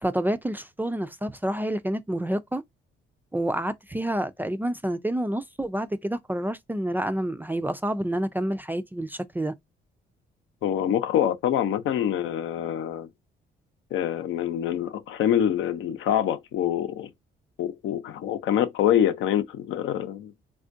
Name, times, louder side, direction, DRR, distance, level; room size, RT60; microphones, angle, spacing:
voice 1, 0.0-2.6 3.3-9.5, right 1 dB, 10° right, 0.3 m, -28 dB
voice 2, 10.6-13.1 13.9-17.1 17.6-20.3, left 10 dB, 80° left, 0.7 m, -25 dB
3.5 x 2.4 x 2.5 m
cardioid pair, 90°, 20 cm